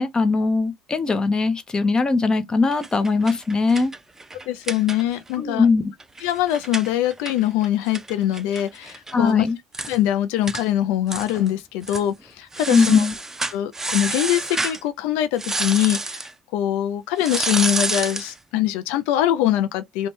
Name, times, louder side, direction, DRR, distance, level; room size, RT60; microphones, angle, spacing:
voice 1, 0.0-3.9 5.4-5.8 9.1-9.6 12.7-13.1, left 4 dB, 30° left, 0.7 m, -20 dB
sound 1, 2.7-5.3 5.6-5.7 6.0-9.1 9.4-9.5 9.7-10.0 10.5-10.6 11.1-11.5 11.8-12.1 12.5-14.8 15.4-16.3 17.2-18.3, right 2 dB, 15° right, 0.4 m, -29 dB
voice 2, 4.5-5.7 6.2-9.4 9.9-13.1 13.5-20.1, left 12 dB, 80° left, 0.3 m, -23 dB
2.6 x 2.2 x 3.1 m
hypercardioid pair, 65°, 3 cm